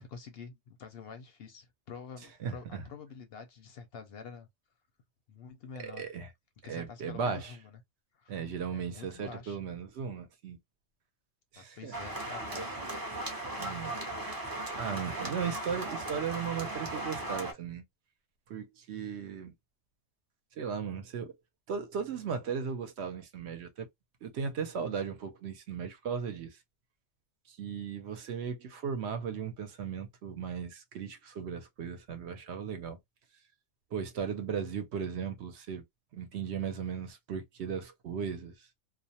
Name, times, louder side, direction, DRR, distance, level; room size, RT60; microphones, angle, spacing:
voice 1, 0.0-4.5 5.3-6.0 6.6-7.8 8.1-8.3 8.7-9.6 11.6-12.8, left 6 dB, 60° left, 0.7 m, -47 dB
voice 2, 2.4-2.8 5.8-6.3 6.7-7.5 8.3-10.6 11.5-11.9 13.6-14.0 14.7-17.8 18.5-19.5 20.6-21.3 21.7-23.9 24.2-26.6 27.5-33.0 33.9-35.8 36.1-38.7, right 6 dB, 70° right, 0.8 m, -36 dB
sound 1, 11.9-17.5, right 2 dB, 30° right, 0.4 m, -37 dB
2.4 x 2.1 x 2.7 m
omnidirectional pair, 1.3 m